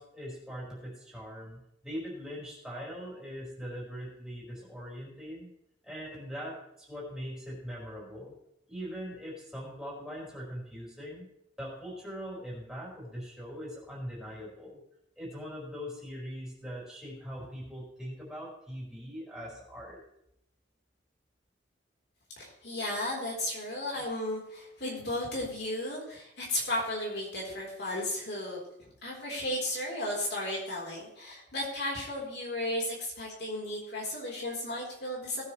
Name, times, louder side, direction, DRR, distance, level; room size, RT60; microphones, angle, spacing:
voice 1, 0.0-5.5 5.8-8.3 8.7-11.3 11.6-14.8 15.2-20.0, equal, 5° right, -6 dB, 5.3 m, -41 dB
voice 2, 22.4-35.5, left 1 dB, 60° left, -3 dB, 4.0 m, -34 dB
19.0 x 9.6 x 3.3 m, 0.77 s
head